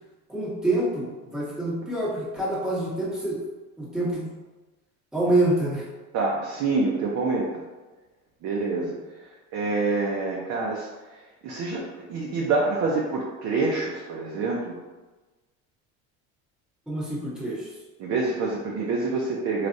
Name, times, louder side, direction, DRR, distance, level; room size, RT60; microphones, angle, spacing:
voice 1, 0.3-3.4 3.8-4.3 5.1-5.8 16.9-17.7, right 1 dB, ahead, -6 dB, 0.9 m, -26 dB
voice 2, 6.1-7.6 8.4-9.0 9.5-10.9 11.4-14.7 18.0-19.7, right 3 dB, 45° right, -3 dB, 0.6 m, -26 dB
3.3 x 2.4 x 2.6 m, 1.2 s
supercardioid pair, 110°, 34 cm